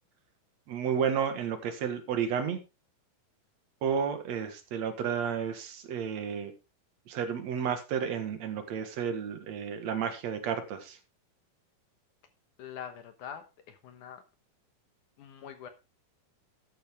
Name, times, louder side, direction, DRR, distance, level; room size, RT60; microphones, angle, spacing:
voice 1, 0.7-2.6 3.8-6.5 7.1-11.0, right 7 dB, 55° right, 8 dB, 2.5 m, -32 dB
voice 2, 12.6-14.2 15.2-15.7, left 8 dB, 70° left, 9 dB, 2.3 m, -44 dB
13.0 x 9.0 x 3.5 m, 0.27 s
omnidirectional pair, 4.2 m